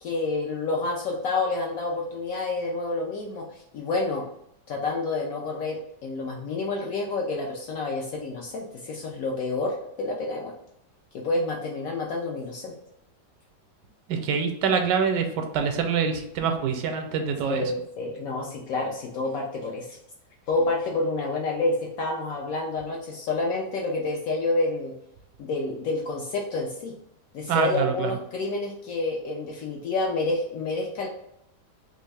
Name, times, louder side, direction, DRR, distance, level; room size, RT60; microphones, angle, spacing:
voice 1, 0.0-4.2 4.7-10.5 11.2-12.7 17.5-20.0 20.5-24.9 25.4-26.9 27.3-31.1, left 2 dB, 70° left, 0 dB, 0.8 m, -28 dB
voice 2, 14.1-17.7 27.5-28.2, right 6 dB, 80° right, 5 dB, 1.2 m, -25 dB
3.3 x 2.5 x 3.2 m, 0.77 s
omnidirectional pair, 1.9 m